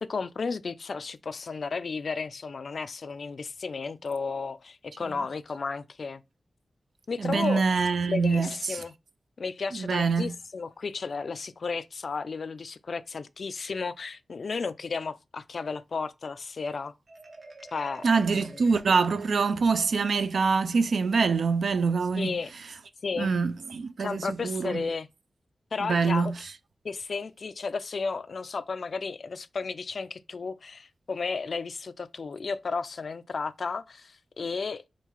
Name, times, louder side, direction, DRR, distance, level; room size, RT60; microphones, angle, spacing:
voice 1, 0.0-6.2 7.1-7.6 8.1-8.9 9.4-16.9 17.7-18.0 18.3-18.5 22.1-22.5 23.0-23.3 24.0-25.1 25.7-26.3 26.8-34.8, left 4 dB, 60° left, 0.3 m, -33 dB
voice 2, 7.2-8.8 9.7-10.3 18.0-22.4 23.2-24.8 25.8-26.3, right 4 dB, 75° right, 0.3 m, -25 dB
Marimba xylophone, 17.1-19.8, right 2 dB, 50° right, 0.8 m, -49 dB
3.7 x 2.4 x 4.5 m
wide cardioid pair, 120°, 0 cm